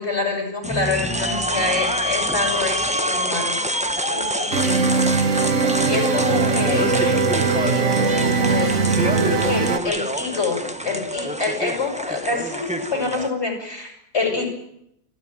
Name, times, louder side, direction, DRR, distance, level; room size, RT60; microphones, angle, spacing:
voice 1, 0.0-3.8 4.1-4.8 5.9-8.9 9.2-10.6 10.8-14.4, left 4 dB, 45° left, 3 dB, 6.7 m, -26 dB
sound 1, 0.6-13.3, equal, 5° right, 1.3 m, -26 dB
sound 2, 4.5-9.8, right 4 dB, 55° right, 1.6 m, -20 dB
30.0 x 12.5 x 9.1 m, 0.77 s
omnidirectional pair, 1.5 m